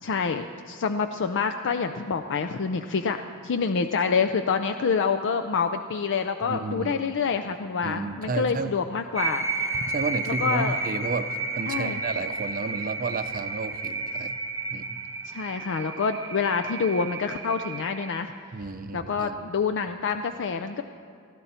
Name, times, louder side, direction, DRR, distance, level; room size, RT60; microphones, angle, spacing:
voice 1, 0.0-9.7 10.3-10.8 11.7-12.0 15.3-18.3 18.9-20.8, left 5 dB, 55° left, 8 dB, 0.5 m, -27 dB
voice 2, 6.4-6.9 7.8-8.7 9.7-14.4 14.7-15.0 18.5-19.4, right 3 dB, 40° right, 10 dB, 0.6 m, -32 dB
sound 1, 9.2-18.2, right 3 dB, 10° right, 1.0 m, -32 dB
19.5 x 14.5 x 4.3 m, 2.4 s
head